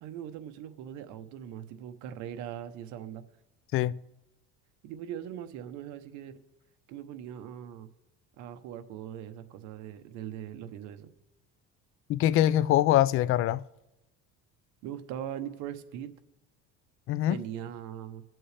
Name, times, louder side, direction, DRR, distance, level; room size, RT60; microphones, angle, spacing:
voice 1, 0.0-3.2 4.8-6.3 6.9-7.9 8.4-11.1 14.8-16.1 17.3-18.2, right 10 dB, 70° right, 1.0 m, -40 dB
voice 2, 12.1-13.6 17.1-17.4, left 13 dB, 45° left, 0.4 m, -23 dB
22.5 x 7.7 x 3.4 m
cardioid pair, 125°, 30 cm